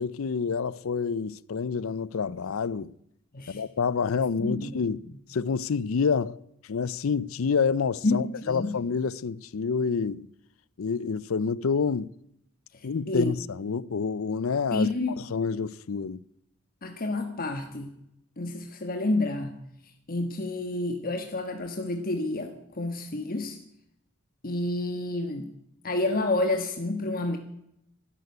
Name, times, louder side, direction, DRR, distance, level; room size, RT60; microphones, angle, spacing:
voice 1, 0.0-2.9 3.5-5.0 5.3-6.4 6.7-10.3 10.8-12.1 12.8-14.9 15.3-16.2, left 5 dB, 80° left, 0.5 m, -28 dB
voice 2, 4.4-4.7 8.0-8.7 12.7-13.4 14.7-15.2 16.8-17.9 18.4-19.5 20.1-23.6 24.4-25.5 25.8-27.4, left 2 dB, 45° left, 1.4 m, -29 dB
12.5 x 11.5 x 9.4 m
head